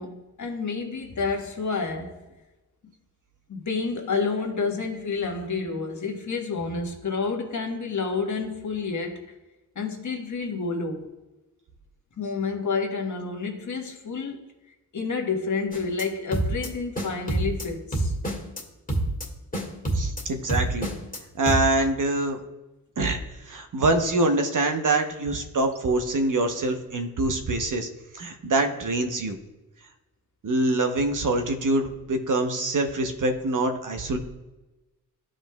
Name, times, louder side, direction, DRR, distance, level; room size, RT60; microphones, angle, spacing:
voice 1, 0.0-2.1 3.5-9.3 9.7-11.1 12.2-14.5 14.9-18.1, left 4 dB, 50° left, 2 dB, 1.4 m, -29 dB
sound 1, 15.7-16.0 16.3-16.7 16.9-17.6 17.9-18.6 18.9-19.3 19.5-20.2 20.5-21.2 21.5-21.6, right 1 dB, 20° left, 1.8 m, -27 dB
voice 2, 19.9-20.9 21.4-22.4 23.0-27.9 28.1-29.4 30.4-34.2, right 2 dB, 55° right, 6 dB, 0.9 m, -25 dB
12.0 x 5.0 x 2.3 m, 1.1 s
cardioid pair, 65°, 37 cm